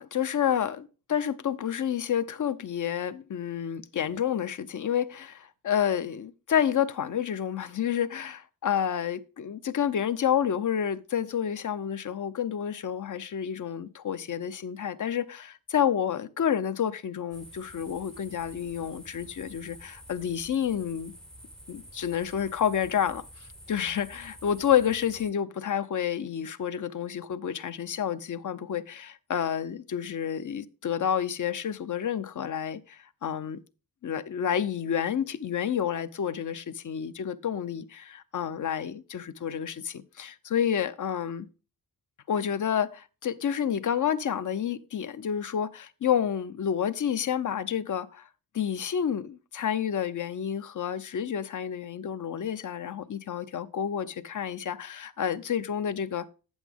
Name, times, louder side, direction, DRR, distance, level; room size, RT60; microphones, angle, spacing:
voice 1, 0.0-21.1 21.7-23.2 23.7-33.6 34.0-41.5 42.3-48.3 48.5-56.3, left 9 dB, 55° left, 0.6 m, -29 dB
sound 1, 17.3-25.3, equal, ahead, 0.5 m, -49 dB
8.1 x 8.1 x 3.5 m
wide cardioid pair, 100°, 37 cm